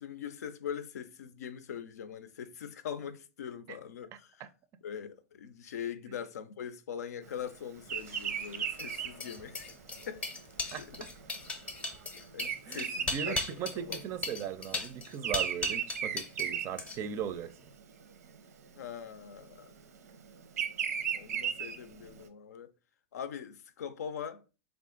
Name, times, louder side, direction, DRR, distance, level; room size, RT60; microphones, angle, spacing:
voice 1, 0.0-4.4 4.8-9.7 10.1-10.2 10.6-11.1 12.3-14.0 18.8-19.7 21.1-22.7 23.1-24.4, left 8 dB, 90° left, 0.5 m, -42 dB
Bird vocalization bird call bird song, 7.8-14.3 14.5-17.4 17.9-18.2 19.2-22.2, right 8 dB, 90° right, 0.7 m, -36 dB
sound 1, 8.0-16.5 16.8-17.2, left 2 dB, 15° left, 0.6 m, -38 dB
voice 2, 12.7-17.5, right 8 dB, 30° right, 0.4 m, -38 dB
3.5 x 2.4 x 3.7 m
hypercardioid pair, 135°, 8 cm